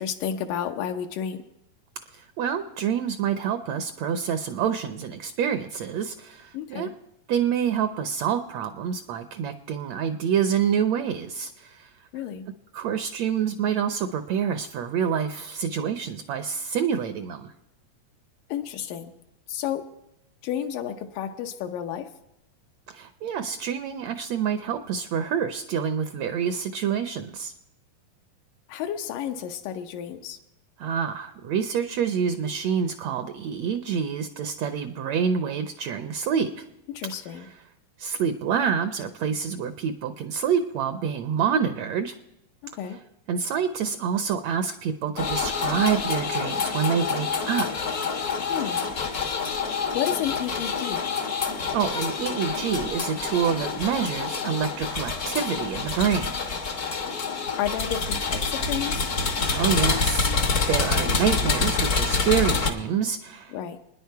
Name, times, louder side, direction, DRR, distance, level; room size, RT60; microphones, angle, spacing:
voice 1, 0.0-1.4 6.5-6.9 12.1-12.5 18.5-19.1 19.5-19.9 20.4-22.1 28.7-30.4 36.9-37.5 42.6-43.0 48.5-48.9 49.9-51.0 57.5-59.1 63.5-63.8, left 9 dB, 80° left, 5 dB, 2.5 m, -31 dB
voice 2, 2.1-6.9 7.3-11.9 12.7-17.5 22.9-27.5 30.8-36.6 37.3-37.5 38.0-42.1 43.3-47.9 51.7-56.4 59.4-63.5, right 7 dB, 75° right, 9 dB, 1.6 m, -27 dB
sound 1, 45.2-62.7, left 4 dB, 65° left, 0.9 m, -27 dB
27.5 x 10.0 x 4.6 m, 0.87 s
omnidirectional pair, 3.8 m